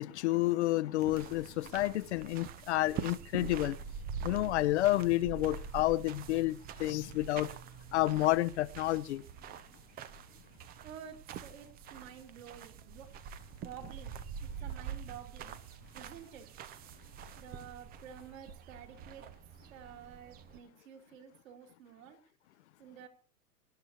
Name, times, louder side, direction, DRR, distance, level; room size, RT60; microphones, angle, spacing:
voice 1, 0.0-3.8 4.2-7.5 7.9-9.2, left 16 dB, 45° left, 0.9 m, -30 dB
sound 1, 1.0-20.6, right 7 dB, 20° right, 0.8 m, -45 dB
voice 2, 10.8-13.1 13.6-14.1 14.4-15.6 15.9-16.5 17.4-19.3 19.7-22.2 22.8-23.1, right 8 dB, 55° right, 4.3 m, -50 dB
26.0 x 11.0 x 2.9 m
figure-of-eight pair, 115°, 47 cm